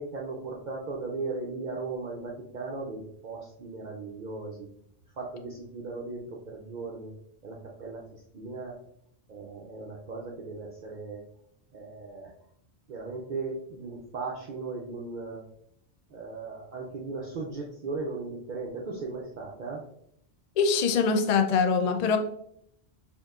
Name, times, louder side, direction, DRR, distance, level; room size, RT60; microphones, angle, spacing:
voice 1, 0.0-4.7 5.2-7.1 7.4-8.0 8.3-8.8 9.3-11.2 11.7-12.3 12.9-15.4 16.1-19.8, right 3 dB, 55° right, -2 dB, 0.6 m, -37 dB
voice 2, 20.6-22.2, left 5 dB, 55° left, 7 dB, 0.4 m, -23 dB
4.5 x 2.9 x 2.4 m, 0.70 s
omnidirectional pair, 1.1 m